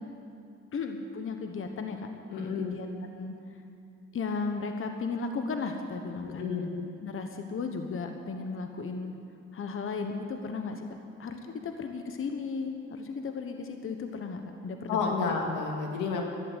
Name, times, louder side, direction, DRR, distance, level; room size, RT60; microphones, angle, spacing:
voice 1, 0.7-2.1 2.3-2.9 3.2-3.4 4.1-6.5 7.0-9.1 9.5-10.9 11.2-15.3, left 4 dB, 45° left, 5 dB, 1.2 m, -35 dB
voice 2, 2.3-2.8 6.2-6.6 14.9-16.2, left 5 dB, 90° left, 1 dB, 2.0 m, -30 dB
12.5 x 10.5 x 8.1 m, 2.6 s
cardioid pair, 90°, 30 cm